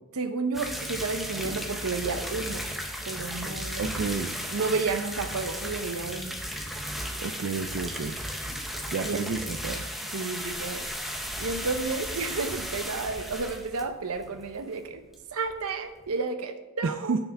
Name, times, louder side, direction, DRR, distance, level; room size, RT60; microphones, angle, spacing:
voice 1, 0.1-2.7 3.0-4.1 4.5-6.4 9.0-9.4 10.1-15.0 15.3-17.2, right 4 dB, 85° right, 8 dB, 0.8 m, -32 dB
sound 1, 0.5-14.9 15.1-15.2 15.5-15.6 16.0-16.1, equal, ahead, 0.6 m, -35 dB
voice 2, 3.8-4.4 7.2-8.2 8.9-9.8 16.8-17.2, right 4 dB, 55° right, 8 dB, 0.4 m, -30 dB
6.8 x 6.8 x 5.7 m, 1.1 s
head